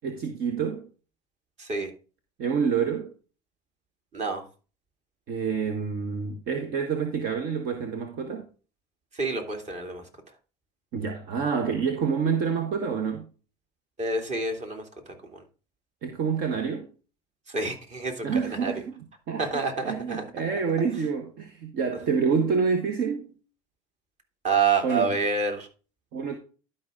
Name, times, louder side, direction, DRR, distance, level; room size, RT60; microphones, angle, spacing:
voice 1, 0.0-0.9 2.4-3.1 5.3-8.5 10.9-13.3 16.0-16.9 18.2-19.5 19.7-23.4 24.8-25.1 26.1-26.4, right 6 dB, 55° right, 1.3 m, -27 dB
voice 2, 1.6-1.9 4.1-4.4 9.1-10.0 14.0-14.8 15.3-15.4 17.5-18.7 19.4-20.2 24.4-25.7, right 4 dB, 35° right, 2.8 m, -28 dB
12.0 x 5.4 x 3.7 m
hypercardioid pair, 70°, 19 cm